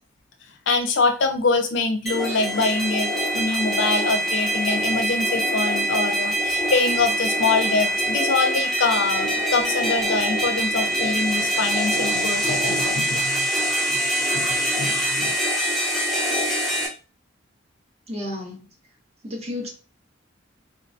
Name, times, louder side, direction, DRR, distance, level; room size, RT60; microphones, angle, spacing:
voice 1, 0.7-13.5 13.8-14.0 14.3-15.3, left 3 dB, 65° left, 5 dB, 0.5 m, -24 dB
sound 1, 2.1-16.9, right 1 dB, ahead, 0.8 m, -24 dB
voice 2, 18.1-18.7 19.2-19.7, left 1 dB, 30° right, -1 dB, 1.0 m, -32 dB
3.8 x 2.1 x 2.6 m, 0.34 s
head